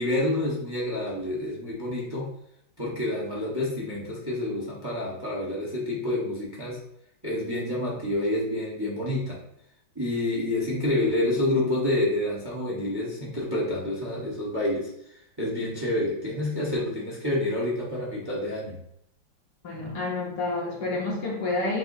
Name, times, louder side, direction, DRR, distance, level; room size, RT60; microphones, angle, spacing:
voice 1, 0.0-2.3 2.8-6.8 7.2-9.4 9.9-14.9 15.4-18.8, left 1 dB, 15° right, -6 dB, 1.0 m, -28 dB
voice 2, 19.6-21.8, left 2 dB, 60° left, -3 dB, 1.5 m, -29 dB
6.9 x 2.8 x 2.7 m, 0.75 s
omnidirectional pair, 2.1 m